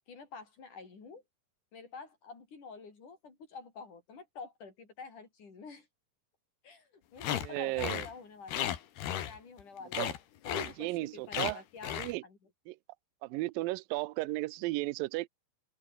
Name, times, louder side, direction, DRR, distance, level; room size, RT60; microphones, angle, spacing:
voice 1, 0.1-1.2 1.7-5.9 6.6-8.8 9.1-10.1 10.4-12.0 12.2-12.4, left 4 dB, 55° left, 7.1 m, -48 dB
sound 1, 7.2-7.5 7.8-8.1 8.5-9.6 9.9-10.2 10.4-10.7 11.3-11.5 11.8-12.1, left 11 dB, 85° left, 4.0 m, -34 dB
voice 2, 7.4-8.1 10.0-10.1 10.5-11.6 11.9-12.2 12.7-12.8 13.2-15.3, right 20 dB, 75° right, 2.3 m, -34 dB
omnidirectional pair, 4.4 m